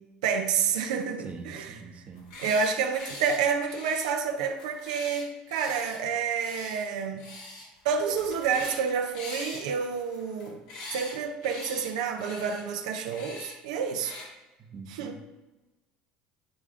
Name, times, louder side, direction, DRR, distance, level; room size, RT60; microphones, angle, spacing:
voice 1, 0.2-1.8 2.4-7.3 7.8-10.6 10.9-14.2 14.9-15.2, right 6 dB, 90° right, 0.7 m, -29 dB
voice 2, 1.2-2.3 14.6-15.1, right 4 dB, 40° right, 1.0 m, -43 dB
sound 1, 2.1-2.7 3.0-3.4 3.7-6.0 6.3-6.8 7.2-7.7 7.9-8.8 9.1-11.1 11.4-11.9 12.2-12.6 13.1-13.5 13.9-14.3, left 2 dB, 85° left, 2.2 m, -42 dB
9.9 x 3.4 x 3.7 m
supercardioid pair, 90°, 3 cm